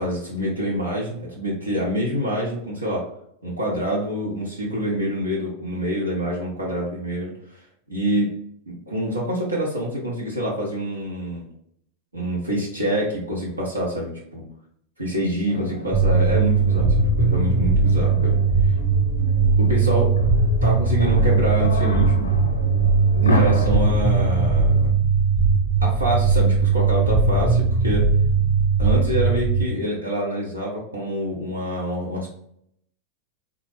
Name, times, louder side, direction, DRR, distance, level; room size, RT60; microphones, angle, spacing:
voice 1, 0.0-3.1 3.4-7.6 7.9-8.3 8.7-11.4 12.1-14.4 15.0-18.4 19.6-20.2 20.6-22.3 23.2-24.9 25.8-28.1 28.8-32.3, equal, 85° right, -5 dB, 0.9 m, -26 dB
sound 1, 15.5-24.8, left 2 dB, 75° left, 0.5 m, -30 dB
sound 2, 15.9-29.6, right 4 dB, 15° right, 0.5 m, -19 dB
3.8 x 3.0 x 3.1 m, 0.71 s
figure-of-eight pair, 90°, 0 cm